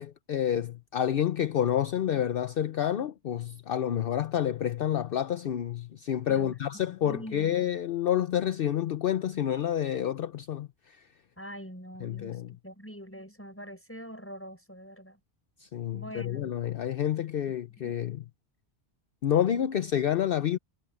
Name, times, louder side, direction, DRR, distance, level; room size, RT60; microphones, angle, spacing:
voice 1, 0.0-11.0 12.0-12.5 15.6-18.2 19.2-20.6, left 10 dB, 60° left, 0.8 m, -29 dB
voice 2, 6.2-6.6 6.9-7.7 11.4-15.2 15.9-16.5 17.8-17.9, equal, 10° left, 7.0 m, -44 dB
omnidirectional pair, 1.1 m